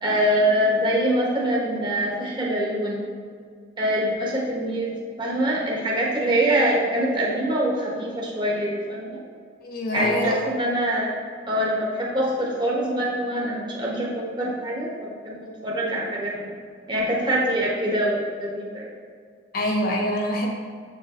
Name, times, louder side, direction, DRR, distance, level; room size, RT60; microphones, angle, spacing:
voice 1, 0.0-3.1 3.8-4.9 5.2-9.2 9.9-11.1 11.5-16.4 16.9-18.9, right 1 dB, 25° right, -4 dB, 1.2 m, -24 dB
voice 2, 9.6-10.4 19.5-20.5, equal, 50° left, 0 dB, 1.2 m, -25 dB
7.4 x 7.3 x 3.0 m, 2.1 s
head